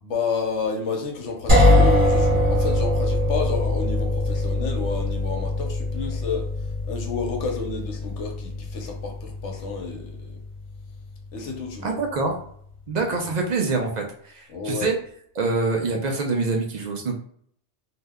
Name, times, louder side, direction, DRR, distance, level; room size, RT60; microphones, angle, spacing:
voice 1, 0.0-6.5 6.9-10.4 11.3-12.0 14.5-14.9, left 4 dB, 90° left, 2 dB, 1.1 m, -30 dB
sound 1, 1.5-11.3, left 1 dB, 25° right, 1.2 m, -23 dB
voice 2, 11.8-12.3 12.9-15.0 15.4-17.2, right 3 dB, 55° right, 2 dB, 0.5 m, -25 dB
2.7 x 2.1 x 3.4 m, 0.62 s
omnidirectional pair, 1.2 m